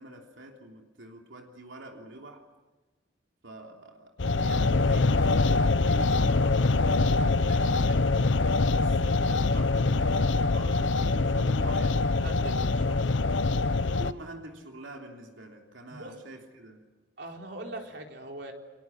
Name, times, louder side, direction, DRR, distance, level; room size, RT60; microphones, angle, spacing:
voice 1, 0.0-2.5 3.4-8.4 8.6-12.2 13.8-16.8, right 1 dB, 85° right, 3.2 m, -46 dB
sound 1, 4.2-14.1, left 3 dB, 75° left, 0.8 m, -24 dB
voice 2, 12.1-13.3 15.9-16.2 17.2-18.5, right 1 dB, 60° right, 4.0 m, -41 dB
29.5 x 24.0 x 7.5 m
head